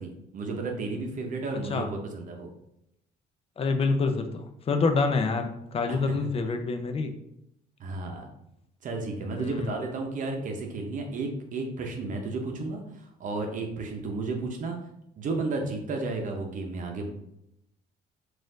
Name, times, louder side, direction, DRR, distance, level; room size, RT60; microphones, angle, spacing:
voice 1, 0.0-2.5 5.9-6.1 7.8-8.3 8.8-14.8 15.2-17.1, right 3 dB, 50° right, 2 dB, 0.7 m, -33 dB
voice 2, 3.6-7.1 9.4-9.7, left 4 dB, 35° left, 7 dB, 0.5 m, -27 dB
4.2 x 2.5 x 3.8 m, 0.80 s
cardioid pair, 110°, 17 cm